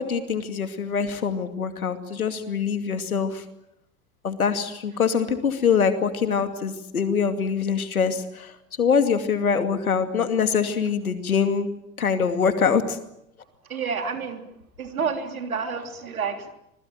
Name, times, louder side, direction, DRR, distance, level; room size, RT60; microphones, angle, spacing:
voice 1, 0.0-3.4 4.2-11.7 12.0-13.0, left 6 dB, 85° left, 9 dB, 2.6 m, -24 dB
voice 2, 13.7-14.4 14.8-16.5, right 5 dB, 80° right, 6 dB, 3.3 m, -29 dB
26.5 x 21.0 x 8.9 m, 0.80 s
figure-of-eight pair, 70°, 42 cm